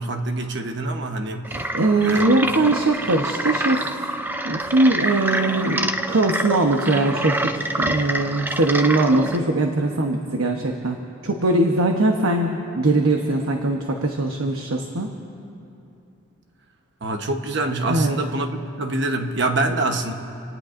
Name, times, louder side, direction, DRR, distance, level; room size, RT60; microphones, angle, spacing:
voice 1, 0.0-1.6 2.0-2.3 2.5-2.6 17.0-20.1, right 2 dB, 55° right, 5 dB, 1.1 m, -25 dB
sound 1, 1.4-9.4, right 1 dB, 10° right, 0.4 m, -27 dB
voice 2, 1.5-3.9 4.4-15.1 17.9-18.2, right 2 dB, 85° right, 2 dB, 1.1 m, -21 dB
28.5 x 18.5 x 2.6 m, 2.7 s
head